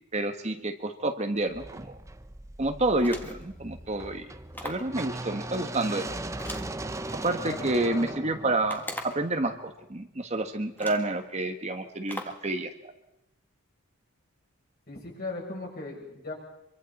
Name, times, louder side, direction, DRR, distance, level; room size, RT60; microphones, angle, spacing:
voice 1, 0.1-2.0 2.6-4.3 4.6-6.1 7.1-12.9, right 2 dB, 30° right, 5 dB, 1.3 m, -29 dB
sound 1, 1.5-9.6, right 2 dB, 15° right, 0.7 m, -39 dB
sound 2, 3.0-3.5 4.5-4.9 6.4-7.4 8.7-9.3 10.2-10.3 10.8-11.1 12.1-12.5, left 1 dB, 10° left, 1.9 m, -40 dB
voice 2, 7.4-8.2 14.9-16.3, left 2 dB, 45° left, -1 dB, 7.1 m, -38 dB
25.5 x 24.0 x 4.2 m, 0.88 s
head